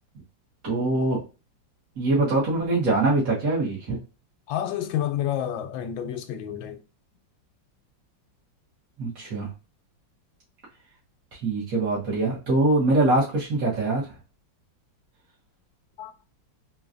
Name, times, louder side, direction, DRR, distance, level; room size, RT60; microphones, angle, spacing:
voice 1, 0.6-1.2 2.0-4.0 9.0-9.5 11.4-14.1, right 2 dB, 50° right, 1.8 m, -23 dB
voice 2, 4.5-6.8 16.0-16.1, left 11 dB, 85° left, 1.3 m, -29 dB
3.9 x 2.9 x 2.5 m
omnidirectional pair, 2.1 m